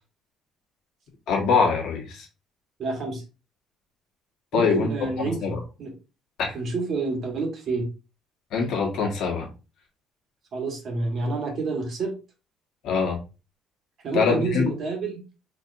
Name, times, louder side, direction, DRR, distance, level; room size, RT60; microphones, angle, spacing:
voice 1, 1.3-2.3 4.5-4.9 5.4-5.6 6.4-6.6 8.5-9.5 12.8-13.2 14.1-14.6, left 5 dB, 65° left, 1 dB, 1.2 m, -23 dB
voice 2, 2.8-3.2 4.5-5.9 6.5-7.8 10.5-12.1 14.0-15.2, right 3 dB, 45° right, 2 dB, 1.4 m, -28 dB
4.2 x 2.9 x 2.6 m, 0.30 s
cardioid pair, 140°, 0 cm